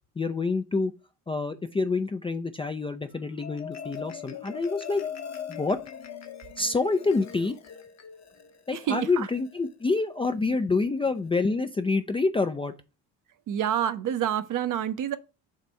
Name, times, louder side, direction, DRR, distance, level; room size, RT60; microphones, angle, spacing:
voice 1, 0.2-0.9 1.3-5.0 5.5-5.8 6.6-7.6 8.7-12.7, left 3 dB, 10° left, 0.4 m, -27 dB
Marimba xylophone, 3.1-9.7, left 7 dB, 35° left, 1.0 m, -41 dB
voice 2, 8.7-9.3 13.5-15.2, right 10 dB, 40° right, 0.7 m, -28 dB
7.5 x 2.5 x 5.7 m
figure-of-eight pair, 50°, 47 cm